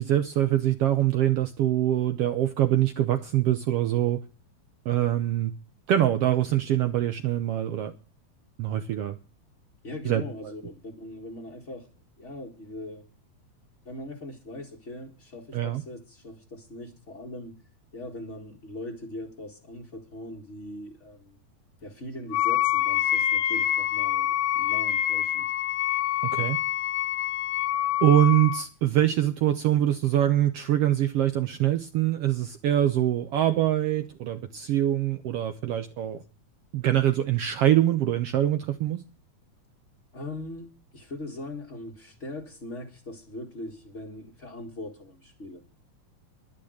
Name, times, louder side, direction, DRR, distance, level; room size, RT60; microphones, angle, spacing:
voice 1, 0.0-4.2 4.8-5.5 5.9-7.9 8.6-9.2 10.0-10.2 15.5-15.8 26.3-26.6 28.0-36.2 36.7-39.0, right 12 dB, 70° right, 1.5 m, -24 dB
voice 2, 9.8-11.9 12.2-13.1 13.8-17.6 17.9-21.4 21.8-25.5 40.1-45.6, left 1 dB, 30° left, 1.6 m, -40 dB
Wind instrument woodwind instrument, 22.3-28.6, left 12 dB, 70° left, 1.9 m, -26 dB
11.5 x 10.5 x 6.4 m
omnidirectional pair, 3.5 m